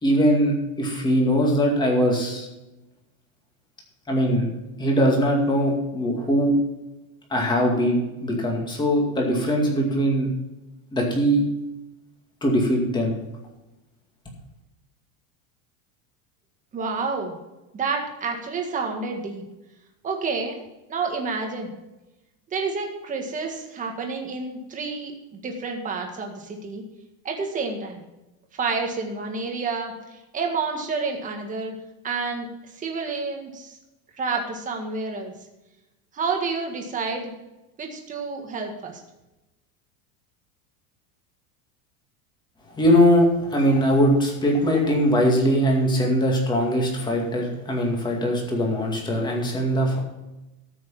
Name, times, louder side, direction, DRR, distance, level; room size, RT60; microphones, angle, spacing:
voice 1, 0.0-2.5 4.1-4.5 4.8-6.5 7.3-10.3 10.9-11.4 12.4-13.2 42.8-50.0, equal, 10° left, 0 dB, 2.2 m, -21 dB
voice 2, 16.7-17.3 17.7-19.4 20.0-20.6 20.9-21.7 22.5-26.8 27.2-28.0 28.5-31.7 32.0-32.5 32.7-33.8 34.2-35.3 36.1-37.3 37.8-39.0, right 4 dB, 20° right, 2 dB, 1.7 m, -29 dB
14.0 x 6.3 x 5.7 m, 0.99 s
supercardioid pair, 170°, 43 cm